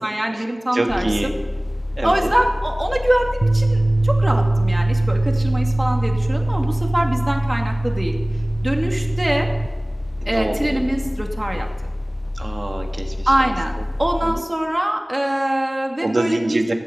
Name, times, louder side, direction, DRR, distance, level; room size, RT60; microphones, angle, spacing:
voice 1, 0.0-1.3 2.0-8.1 8.6-9.5 10.3-11.7 13.3-16.6, right 1 dB, 30° right, 2 dB, 2.3 m, -23 dB
voice 2, 0.7-1.4 2.0-2.3 10.2-10.9 12.3-13.3 14.2-14.4 16.0-16.7, right 2 dB, 90° right, 4 dB, 1.5 m, -25 dB
sound 1, 0.9-14.4, left 1 dB, 45° left, 0.4 m, -28 dB
sound 2, 3.4-9.7, right 2 dB, 55° right, 0.3 m, -21 dB
16.0 x 8.4 x 8.0 m, 1.3 s
wide cardioid pair, 45°, 0 cm